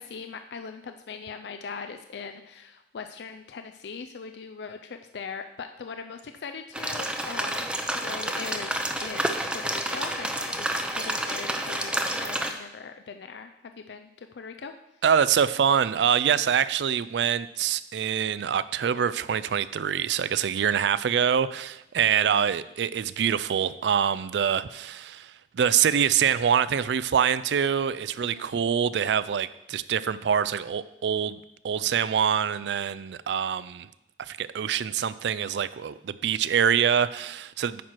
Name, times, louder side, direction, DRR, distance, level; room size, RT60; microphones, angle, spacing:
voice 1, 0.0-8.7 9.0-14.7 28.2-28.5, left 5 dB, 70° left, 7 dB, 0.4 m, -40 dB
sound 1, 6.7-12.5, right 1 dB, 5° right, 0.6 m, -29 dB
voice 2, 15.0-31.4 31.6-33.9 34.2-37.8, right 8 dB, 70° right, 17 dB, 0.4 m, -25 dB
9.3 x 4.6 x 5.9 m, 0.87 s
head